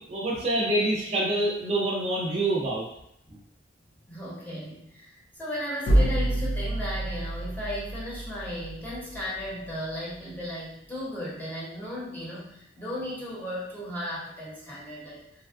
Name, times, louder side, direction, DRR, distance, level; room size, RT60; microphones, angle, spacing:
voice 1, 0.1-2.9, right 1 dB, 35° right, -5 dB, 0.5 m, -26 dB
voice 2, 4.1-15.2, left 1 dB, 10° left, -7 dB, 0.9 m, -35 dB
sound 1, 5.9-9.7, right 1 dB, 70° left, 0.5 m, -28 dB
3.4 x 2.3 x 2.4 m, 0.75 s
head